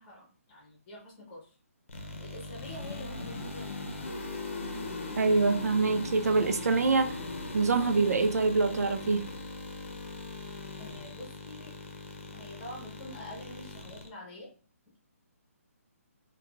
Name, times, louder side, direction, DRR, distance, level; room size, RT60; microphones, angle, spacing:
voice 1, 0.0-1.5 2.2-4.0 10.8-11.7 12.3-14.5, left 1 dB, 15° left, 0.9 m, -46 dB
sound 1, 1.9-14.1, left 3 dB, 55° left, 0.7 m, -40 dB
voice 2, 5.2-7.2 7.5-9.3, right 4 dB, 90° right, 0.4 m, -25 dB
3.1 x 2.3 x 2.3 m
hypercardioid pair, 170°, 8 cm